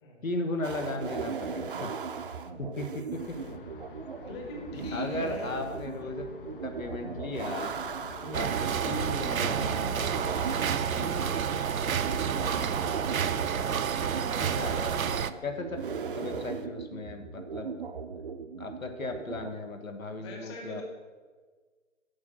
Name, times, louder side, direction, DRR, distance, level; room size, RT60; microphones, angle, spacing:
voice 1, 0.2-1.9 2.6-3.3 4.9-6.3 6.6-7.7 8.3-10.6 10.9-11.5 14.4-14.8 15.4-15.8 16.2-17.7 18.6-20.8, left 2 dB, 80° left, 5 dB, 1.4 m, -36 dB
sound 1, 0.6-19.5, right 5 dB, 40° right, 0.5 m, -38 dB
sound 2, 3.1-13.2, left 5 dB, 45° left, 0.5 m, -48 dB
voice 2, 4.2-5.5 8.2-8.5 14.7-14.9 20.2-20.8, left 2 dB, 20° left, 1 dB, 1.2 m, -41 dB
sound 3, 8.3-15.3, right 7 dB, 90° right, 0.6 m, -29 dB
7.9 x 5.3 x 7.3 m, 1.4 s
figure-of-eight pair, 145°, 40 cm